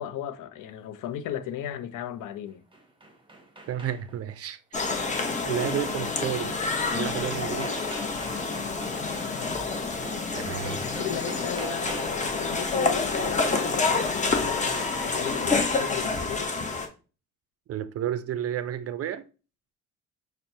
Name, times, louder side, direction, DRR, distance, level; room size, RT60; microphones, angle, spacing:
voice 1, 0.0-2.6 9.4-9.7 10.8-14.0 14.4-16.6, left 10 dB, 70° left, 0.5 m, -36 dB
sound 1, 2.5-4.3 6.6-6.7 7.0-12.4, right 1 dB, 15° right, 0.8 m, -43 dB
voice 2, 3.7-4.6 5.4-6.6 6.9-7.8 10.3-10.8 17.7-19.2, right 10 dB, 50° right, 0.4 m, -31 dB
sound 2, 4.7-16.9, left 4 dB, 20° left, 0.7 m, -28 dB
5.8 x 2.1 x 2.7 m
cardioid pair, 90°, 33 cm